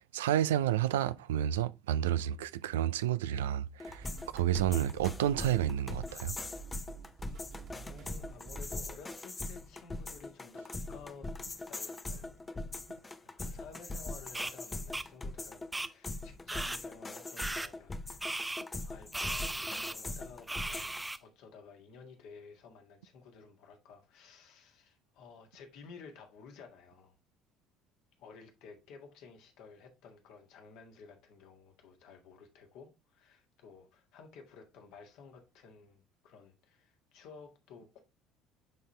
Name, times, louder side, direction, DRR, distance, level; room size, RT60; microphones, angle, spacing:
voice 1, 0.1-6.4, right 11 dB, 80° right, 0.4 m, -30 dB
sound 1, 3.8-21.0, left 2 dB, 20° left, 0.9 m, -41 dB
sound 2, 3.9-8.9, right 5 dB, 50° right, 1.9 m, -49 dB
voice 2, 7.5-11.3 11.7-12.3 13.2-18.0 18.8-27.1 28.2-38.0, left 5 dB, 65° left, 1.7 m, -54 dB
sound 3, 14.3-14.5 14.9-15.1 15.7-15.9 16.5-16.8 17.4-17.7 18.2-18.6 19.1-19.9 20.5-21.2, right 2 dB, 10° right, 0.6 m, -36 dB
9.1 x 4.2 x 3.2 m
hypercardioid pair, 60°, 0 cm